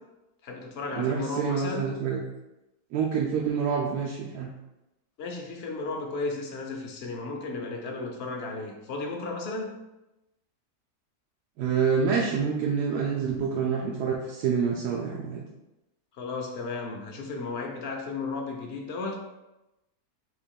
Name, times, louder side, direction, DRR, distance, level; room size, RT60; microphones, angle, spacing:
voice 1, 0.4-1.8 5.2-9.7 16.2-19.2, left 3 dB, 55° left, 2 dB, 0.7 m, -34 dB
voice 2, 0.9-2.2 2.9-4.5 11.6-15.4, right 6 dB, 85° right, -2 dB, 1.2 m, -27 dB
3.9 x 2.9 x 4.4 m, 0.97 s
omnidirectional pair, 1.7 m